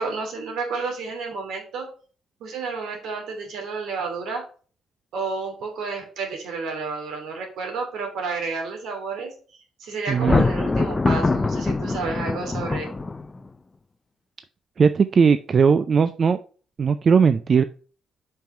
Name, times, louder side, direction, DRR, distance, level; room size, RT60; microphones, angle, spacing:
voice 1, 0.0-1.9 2.4-4.5 5.1-9.3 9.8-12.8, right 4 dB, 80° right, 2 dB, 2.9 m, -31 dB
Thunder, 10.1-13.5, left 3 dB, 20° left, 0.4 m, -23 dB
voice 2, 10.1-10.4 14.8-16.4 16.8-17.6, right 6 dB, 45° right, 11 dB, 0.4 m, -18 dB
5.4 x 4.5 x 5.6 m, 0.39 s
cardioid pair, 90°, 0 cm